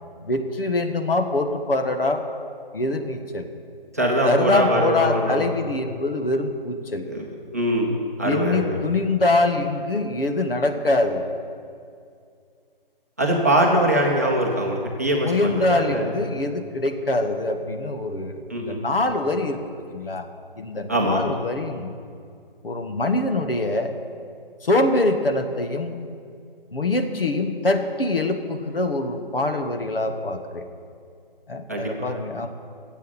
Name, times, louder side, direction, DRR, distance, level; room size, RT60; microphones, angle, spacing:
voice 1, 0.2-2.2 2.7-3.5 4.2-7.1 8.2-11.3 15.2-20.2 20.6-22.0 22.6-23.9 24.6-26.0 26.7-30.7 31.5-32.5, left 2 dB, 70° left, 6 dB, 1.6 m, -24 dB
voice 2, 3.9-5.4 7.0-8.8 13.2-16.1 18.5-18.8 20.9-21.3 31.7-31.9, right 1 dB, 15° right, -2 dB, 0.8 m, -22 dB
14.5 x 8.3 x 8.6 m, 2.3 s
hypercardioid pair, 175°, 29 cm